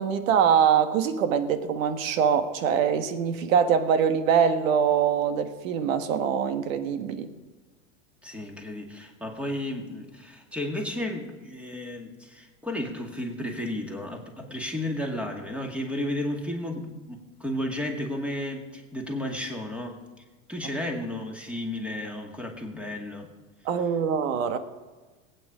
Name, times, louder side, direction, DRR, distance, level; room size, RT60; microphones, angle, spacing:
voice 1, 0.0-7.3 23.6-24.6, right 7 dB, 80° right, 1.5 m, -23 dB
voice 2, 8.2-20.0 20.5-23.3, left 1 dB, 5° right, 2.1 m, -33 dB
19.5 x 9.1 x 5.0 m
supercardioid pair, 135°, 39 cm